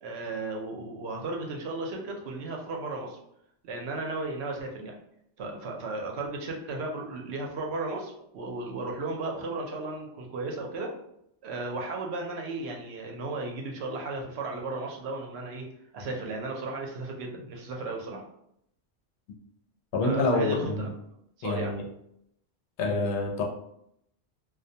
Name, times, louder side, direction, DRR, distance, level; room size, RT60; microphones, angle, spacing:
voice 1, 0.0-3.2 3.6-5.0 5.4-10.9 11.4-15.7 15.9-18.2 20.0-20.9 21.4-21.7 22.8-23.0, right 2 dB, 75° right, 1 dB, 0.8 m, -35 dB
voice 2, 19.9-20.9 21.4-21.8 22.8-23.4, left 2 dB, 90° left, 0 dB, 0.9 m, -27 dB
2.3 x 2.1 x 2.6 m, 0.74 s
omnidirectional pair, 1.1 m